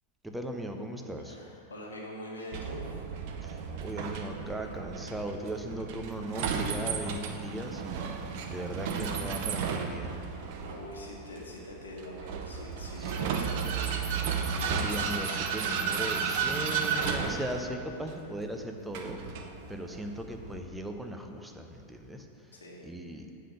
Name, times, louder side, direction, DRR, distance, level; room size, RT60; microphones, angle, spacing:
voice 1, 0.2-1.4 3.4-8.0 8.5-10.2 13.0-13.1 14.4-22.6 22.8-23.3, right 1 dB, 5° right, 4 dB, 0.7 m, -38 dB
voice 2, 1.2-3.1 10.6-14.0 22.5-22.9, left 1 dB, 70° left, -2 dB, 1.5 m, -43 dB
Vehicle, 2.5-20.6, right 6 dB, 50° right, 0.6 m, -33 dB
7.7 x 5.1 x 6.3 m, 2.7 s
figure-of-eight pair, 90°, 0 cm